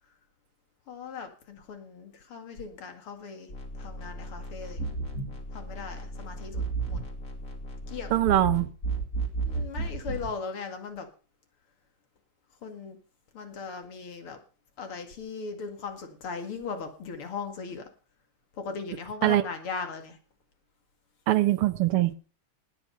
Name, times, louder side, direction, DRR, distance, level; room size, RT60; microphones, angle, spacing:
voice 1, 0.9-3.5 3.8-4.8 5.5-7.0 7.9-8.1 9.4-11.1 12.6-13.0 13.3-14.4 14.8-17.9 18.6-20.2, left 5 dB, 80° left, 6 dB, 3.1 m, -38 dB
sound 1, 3.5-10.3, right 3 dB, 40° left, 2.9 m, -34 dB
voice 2, 8.1-8.7 19.2-19.4 21.3-22.1, right 14 dB, 85° right, 13 dB, 1.8 m, -22 dB
19.0 x 8.3 x 5.7 m, 0.39 s
omnidirectional pair, 2.4 m